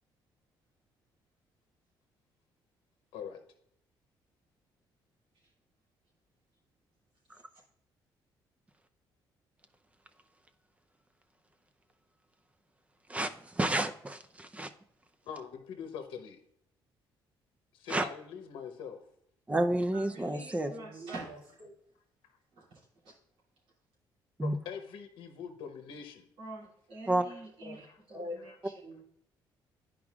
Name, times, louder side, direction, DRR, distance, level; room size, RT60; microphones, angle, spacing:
voice 1, 13.1-14.7 17.9-18.0 19.5-20.7 24.4-24.5 27.1-27.2, right 1 dB, 15° right, 9 dB, 0.6 m, -30 dB
voice 2, 15.2-16.4 17.7-19.0 24.4-26.3 27.8-28.0, left 7 dB, 80° left, 6 dB, 0.8 m, -43 dB
voice 3, 19.9-21.6 22.5-22.8 26.4-28.7, right 3 dB, 85° right, -6 dB, 2.7 m, -47 dB
voice 4, 20.6-21.7 27.6-27.8 28.1-28.5 28.8-29.0, left 1 dB, 50° right, -3 dB, 2.3 m, -44 dB
10.5 x 4.9 x 2.4 m, 0.71 s
cardioid pair, 90°, 9 cm